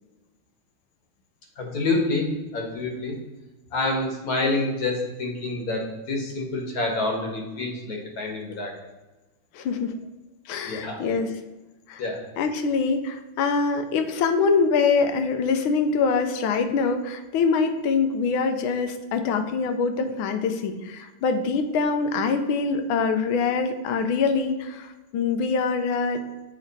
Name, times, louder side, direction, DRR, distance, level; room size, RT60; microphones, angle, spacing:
voice 1, 1.6-3.1 3.7-8.7 10.7-11.0 12.0-12.2, left 2 dB, 50° left, 1 dB, 1.4 m, -27 dB
voice 2, 9.5-10.0 10.5-11.3 11.9-12.0 12.4-26.2, left 5 dB, 85° left, 7 dB, 1.4 m, -24 dB
8.2 x 3.1 x 4.0 m, 1.1 s
omnidirectional pair, 2.2 m